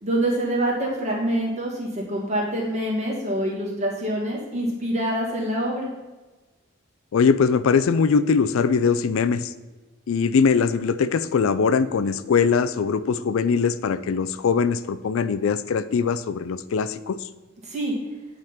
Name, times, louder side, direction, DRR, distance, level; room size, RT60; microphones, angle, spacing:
voice 1, 0.0-5.9 17.6-17.9, right 1 dB, 35° right, -3 dB, 2.0 m, -25 dB
voice 2, 7.1-9.5 10.1-17.3, left 5 dB, 75° left, 14 dB, 0.4 m, -21 dB
9.0 x 3.7 x 5.7 m, 1.2 s
head